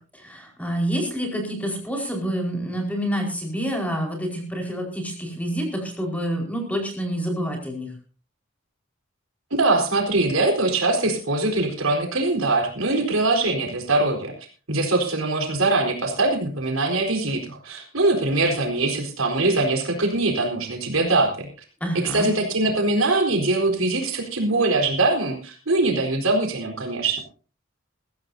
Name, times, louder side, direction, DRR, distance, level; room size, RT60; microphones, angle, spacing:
voice 1, 0.2-7.9 21.8-22.3, equal, 5° left, 1 dB, 4.7 m, -27 dB
voice 2, 9.5-14.3 14.7-21.5 22.1-27.2, right 2 dB, 85° right, 2 dB, 4.3 m, -22 dB
21.0 x 15.0 x 2.7 m, 0.37 s
head